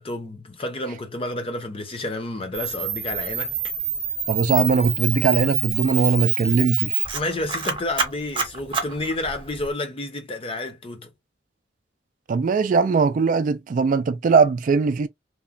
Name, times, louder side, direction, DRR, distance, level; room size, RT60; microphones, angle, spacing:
voice 1, 0.0-3.6 7.1-11.1, left 2 dB, 30° left, 0.6 m, -30 dB
Camera, 2.5-9.7, right 7 dB, 30° right, 0.8 m, -27 dB
voice 2, 4.3-7.0 12.3-15.1, right 5 dB, 45° right, 0.3 m, -20 dB
2.9 x 2.1 x 2.5 m
head